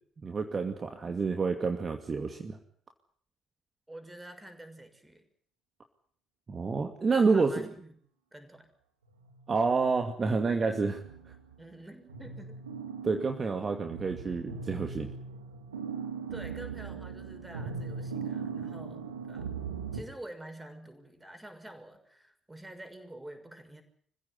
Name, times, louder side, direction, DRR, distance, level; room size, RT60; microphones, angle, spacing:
voice 1, 0.2-2.6 6.5-7.6 9.5-11.0 13.0-15.1, right 4 dB, 40° right, 5 dB, 2.4 m, -28 dB
voice 2, 3.9-5.3 7.1-8.0 8.3-8.7 11.6-12.6 16.3-19.5 19.9-23.8, right 1 dB, 15° right, 8 dB, 6.4 m, -47 dB
sound 1, 9.1-9.7 10.3-11.8 12.1-20.0, right 5 dB, 90° right, 2.4 m, -40 dB
26.0 x 16.0 x 9.7 m, 0.62 s
hypercardioid pair, 45°, 0 cm